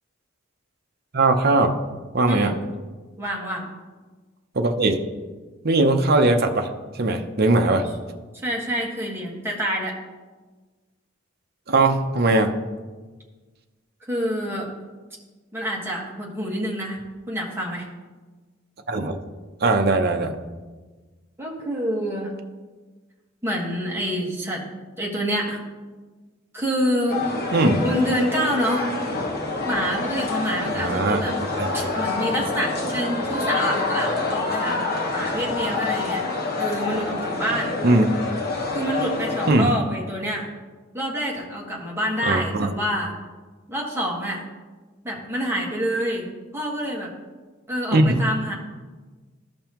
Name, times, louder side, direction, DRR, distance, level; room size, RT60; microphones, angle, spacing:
voice 1, 1.1-1.8 2.1-2.5 4.5-5.0 5.6-6.7 7.0-7.9 11.7-12.6 18.9-19.2 19.6-20.4 27.5-27.9 30.8-31.2 31.6-31.9 37.8-38.1 39.5-39.7 42.2-42.7 47.9-48.2, right 2 dB, 55° right, 5 dB, 0.7 m, -19 dB
voice 2, 2.3-2.6 3.2-3.7 8.3-9.9 14.0-14.7 15.5-17.0 17.3-17.9 21.4-22.3 23.4-24.6 25.0-25.6 26.5-27.2 27.8-28.9 29.6-31.4 31.7-36.2 36.6-37.7 38.7-40.5 40.9-43.2 43.7-44.4 45.0-46.3 46.5-47.1 47.7-48.5, equal, 10° right, -3 dB, 1.5 m, -27 dB
sound 1, 27.1-39.5, left 3 dB, 50° left, 1.2 m, -27 dB
14.5 x 5.4 x 3.0 m, 1.3 s
head